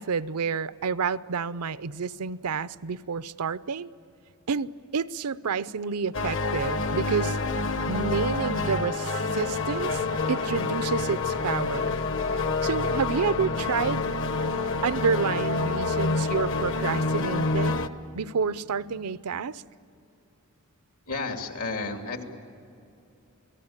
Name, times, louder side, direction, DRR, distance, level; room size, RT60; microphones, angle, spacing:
voice 1, 0.0-3.9 4.5-7.4 7.9-10.0 10.3-12.0 12.6-14.0 14.8-17.9 18.1-19.6, right 5 dB, 90° right, 16 dB, 0.6 m, -29 dB
sound 1, 6.1-17.9, left 3 dB, 60° left, 1.0 m, -27 dB
voice 2, 21.1-22.2, left 3 dB, 85° left, 4 dB, 2.8 m, -32 dB
29.5 x 19.0 x 8.8 m, 2.7 s
head